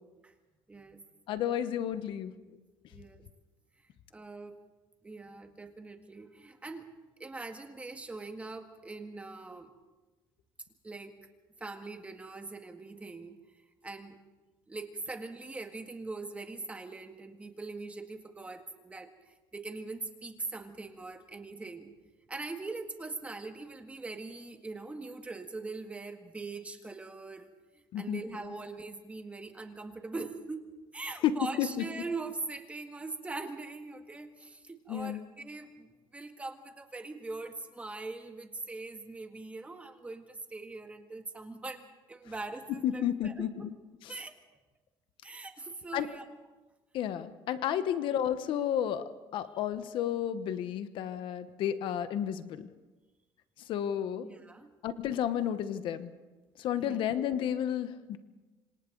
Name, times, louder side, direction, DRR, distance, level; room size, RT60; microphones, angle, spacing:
voice 1, 0.7-1.0 2.9-3.3 4.1-4.6 5.0-6.9 7.2-9.7 10.8-11.2 11.6-13.4 13.8-14.2 14.7-21.9 22.3-27.5 28.0-43.7 44.1-44.4 45.2-46.3 49.5-49.6 54.2-54.7 56.8-57.0, right 3 dB, 15° right, 5 dB, 1.8 m, -42 dB
voice 2, 1.3-2.3 27.9-28.2 31.2-31.8 34.9-35.2 42.8-43.5 45.9-46.1 46.9-49.0 49.3-52.7 53.7-54.3 54.8-56.1 56.6-58.2, left 10 dB, 65° left, 11 dB, 1.1 m, -31 dB
26.5 x 26.5 x 4.0 m, 1.2 s
cardioid pair, 140°, 9 cm